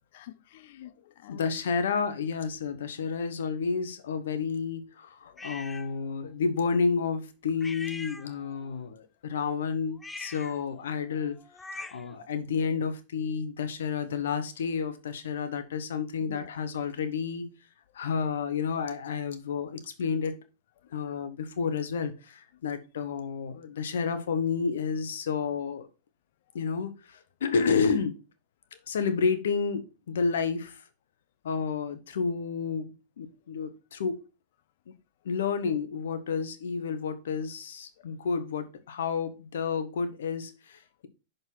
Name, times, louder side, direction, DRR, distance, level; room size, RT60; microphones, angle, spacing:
voice 1, 0.1-1.5 5.3-5.5 11.8-11.9 16.3-16.6, left 13 dB, 65° left, 0.5 m, -49 dB
voice 2, 1.3-11.4 11.7-17.5 17.9-20.4 20.9-25.9 26.5-28.2 28.9-30.8 31.4-34.2 34.9-35.0 35.2-41.1, left 5 dB, 85° left, 1.1 m, -30 dB
sound 1, 5.4-5.9 7.6-8.7 9.9-12.2, left 3 dB, 10° left, 0.4 m, -43 dB
6.2 x 5.3 x 3.9 m
hypercardioid pair, 130°, 0 cm